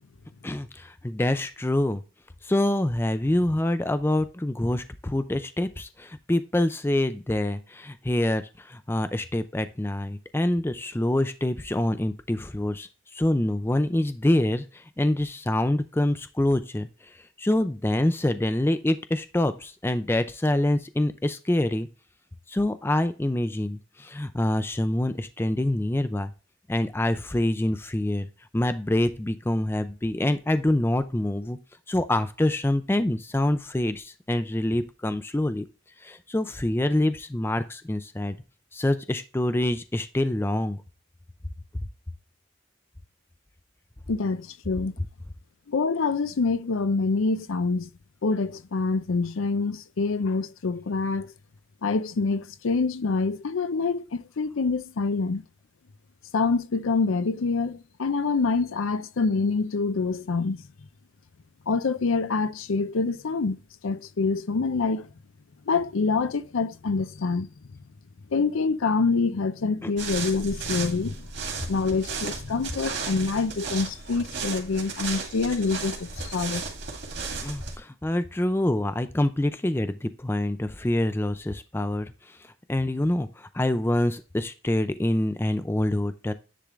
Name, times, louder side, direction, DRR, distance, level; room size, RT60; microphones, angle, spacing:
voice 1, 0.4-2.0 2.4-21.9 22.5-26.3 26.7-28.3 28.5-31.6 31.9-35.7 36.0-38.3 38.7-40.8 69.8-69.9 77.2-82.4 82.7-86.3, left 1 dB, 10° left, 0.4 m, -26 dB
voice 2, 44.1-45.0 45.7-47.9 48.2-51.3 51.8-55.4 56.3-60.6 61.7-65.1 65.7-67.5 68.3-71.3 71.7-76.6, left 4 dB, 80° left, 0.5 m, -26 dB
sound 1, 70.0-77.8, right 5 dB, 55° right, 2.2 m, -35 dB
10.0 x 3.7 x 3.1 m
head